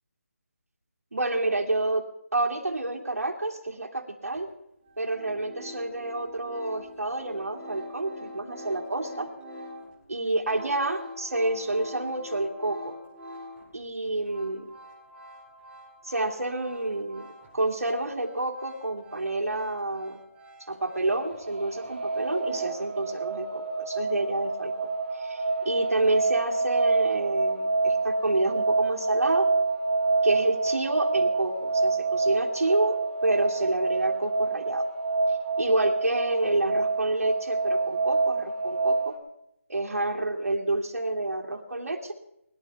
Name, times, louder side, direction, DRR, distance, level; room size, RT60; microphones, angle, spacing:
voice 1, 1.1-2.1 2.3-4.5 5.0-9.3 10.1-13.0 13.7-14.7 16.0-17.3 17.5-20.2 20.7-24.7 25.1-29.5 30.2-34.8 35.6-39.1 39.7-42.1, right 2 dB, 80° right, 0 dB, 2.5 m, -28 dB
sound 1, 4.3-4.4 4.8-13.8 14.1-17.6 17.9-21.5 21.8-22.8, left 1 dB, 5° right, 2.2 m, -45 dB
sound 2, 21.0-39.2, right 3 dB, 25° right, 2.4 m, -27 dB
21.5 x 11.0 x 3.5 m, 0.80 s
figure-of-eight pair, 165°, 8 cm